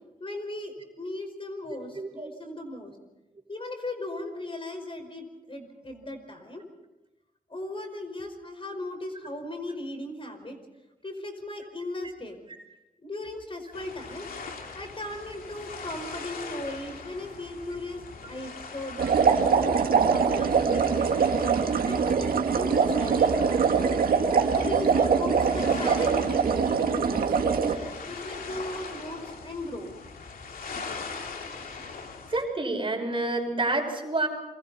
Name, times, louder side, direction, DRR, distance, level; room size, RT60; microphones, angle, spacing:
voice 1, 0.2-2.9 3.5-6.6 7.5-10.6 11.0-12.4 13.0-14.3 14.8-19.8 20.1-20.9 21.9-23.9 24.5-29.9, left 1 dB, 35° left, 5 dB, 5.2 m, -37 dB
voice 2, 1.7-2.3 2.7-2.8 12.5-12.6 32.3-34.3, right 2 dB, 35° right, 3 dB, 5.6 m, -29 dB
sound 1, 13.7-32.4, left 4 dB, 80° left, 2.7 m, -42 dB
sound 2, 19.0-27.8, right 6 dB, 90° right, 2.0 m, -23 dB
29.0 x 23.5 x 4.3 m, 1.0 s
cardioid pair, 55°, 15 cm